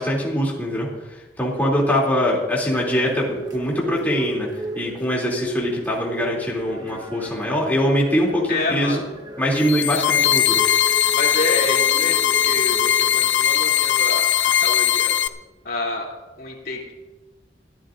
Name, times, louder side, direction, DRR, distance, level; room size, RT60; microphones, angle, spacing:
voice 1, 0.0-4.5 4.7-9.0 9.4-10.6, equal, 10° left, -4 dB, 2.9 m, -23 dB
sound 1, 2.7-13.3, right 1 dB, 25° right, 1.5 m, -35 dB
voice 2, 8.5-9.0 11.1-15.1 15.6-16.1 16.4-16.9, left 2 dB, 55° left, -3 dB, 3.0 m, -28 dB
sound 2, 9.5-15.3, left 10 dB, 85° left, 0.6 m, -19 dB
24.0 x 14.0 x 2.6 m, 1.1 s
head